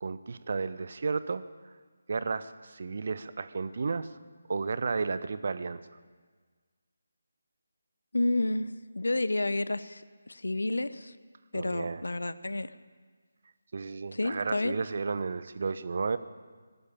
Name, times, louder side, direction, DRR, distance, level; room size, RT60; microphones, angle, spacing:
voice 1, 0.0-1.4 2.1-4.1 4.5-5.8 11.5-12.0 13.7-16.2, right 4 dB, 45° right, 14 dB, 0.9 m, -32 dB
voice 2, 8.1-11.1 11.5-12.7 14.1-14.8, left 2 dB, 65° left, 16 dB, 0.9 m, -30 dB
19.5 x 15.0 x 8.9 m, 1.5 s
figure-of-eight pair, 150°, 0 cm